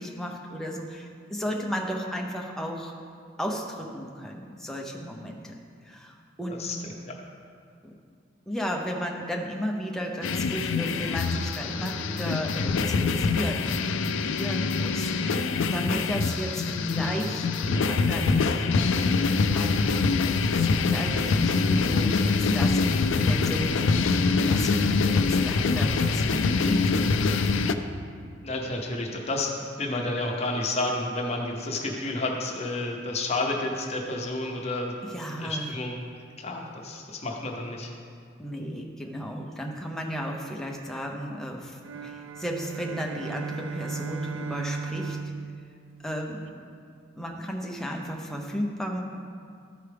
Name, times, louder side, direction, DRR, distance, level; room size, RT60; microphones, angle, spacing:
voice 1, 0.0-2.9 3.4-5.5 5.8-6.7 7.8-7.9 8.5-20.0 20.5-24.1 24.4-27.2 35.1-35.7 38.4-45.3 46.0-46.7 47.2-49.0, equal, ahead, 0 dB, 0.7 m, -34 dB
voice 2, 6.5-7.2 28.4-35.0 35.4-36.0 36.4-37.9, left 2 dB, 35° left, 0 dB, 0.8 m, -30 dB
sound 1, 10.2-27.7, left 4 dB, 75° left, 0.4 m, -24 dB
sound 2, 41.8-46.5, right 4 dB, 85° right, 0.4 m, -36 dB
13.0 x 4.6 x 3.4 m, 2.2 s
head